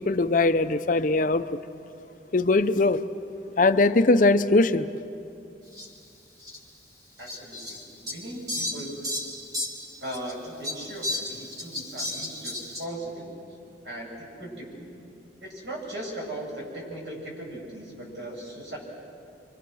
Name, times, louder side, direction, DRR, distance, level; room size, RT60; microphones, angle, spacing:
voice 1, 0.0-1.6 2.3-3.0 3.6-4.9, left 2 dB, 50° left, 10 dB, 0.7 m, -21 dB
Fowl, 5.7-5.9 6.4-6.6 7.3-10.3 10.6-12.8, left 1 dB, 20° right, 2.9 m, -33 dB
voice 2, 7.2-8.9 10.0-13.3 13.8-14.9 15.4-18.8, right 1 dB, 75° right, -2 dB, 7.2 m, -38 dB
29.0 x 24.5 x 6.4 m, 2.6 s
head